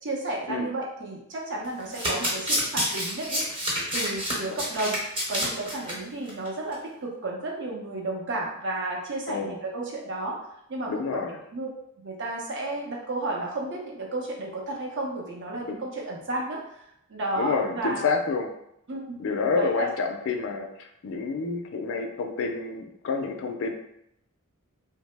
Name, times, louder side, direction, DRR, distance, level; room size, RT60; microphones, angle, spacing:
voice 1, 0.0-3.5 3.9-5.0 5.3-10.4 10.7-11.2 11.5-11.7 12.0-18.1 18.9-19.2 19.5-19.9, right 2 dB, 55° right, -1 dB, 0.6 m, -32 dB
Domestic sounds home sounds, 1.6-5.9 6.3-6.5 6.7-6.8, equal, 25° right, 0.9 m, -28 dB
voice 2, 9.3-9.6 10.9-11.4 15.6-15.8 17.4-18.5 19.2-23.7, left 4 dB, 60° left, 4 dB, 0.4 m, -29 dB
2.8 x 2.0 x 3.2 m, 0.79 s
head